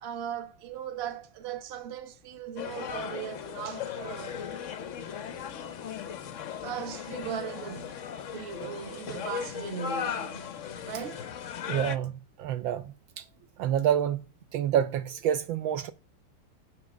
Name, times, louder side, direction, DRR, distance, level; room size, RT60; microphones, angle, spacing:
voice 1, 0.0-4.4 6.6-8.0 8.3-10.5 10.8-11.3, right 8 dB, 40° right, 1.1 m, -38 dB
sound 1, 2.6-12.0, left 8 dB, 65° left, 0.7 m, -37 dB
voice 2, 11.7-12.1 12.4-12.8 13.2-13.3 13.6-14.2 14.5-15.9, right 10 dB, 75° right, 1.3 m, -27 dB
9.4 x 5.5 x 6.2 m
omnidirectional pair, 2.3 m